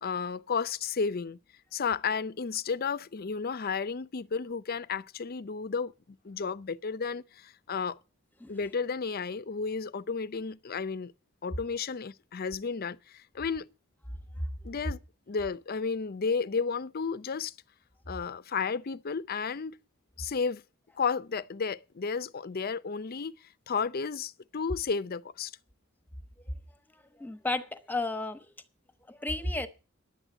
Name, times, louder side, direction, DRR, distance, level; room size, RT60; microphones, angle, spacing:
voice 1, 0.0-1.4 1.7-5.9 6.2-8.0 8.5-11.1 11.4-13.7 14.6-15.0 15.3-17.5 18.1-19.8 20.2-20.6 21.0-23.4 23.7-25.5, left 5 dB, 50° left, 0.6 m, -32 dB
voice 2, 27.2-28.5 29.1-29.7, left 2 dB, 10° left, 1.0 m, -32 dB
10.5 x 8.0 x 7.9 m
head